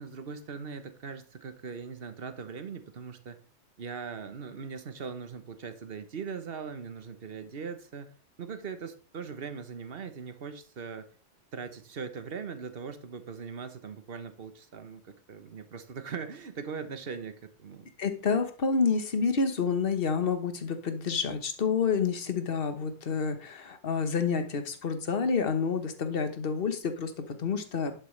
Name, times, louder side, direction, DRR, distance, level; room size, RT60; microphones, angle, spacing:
voice 1, 0.0-3.4 3.8-8.1 8.4-11.1 11.5-17.9, right 5 dB, 55° right, 9 dB, 1.3 m, -40 dB
voice 2, 18.0-28.0, left 5 dB, 50° left, 8 dB, 1.4 m, -29 dB
11.0 x 8.1 x 3.3 m, 0.38 s
omnidirectional pair, 1.2 m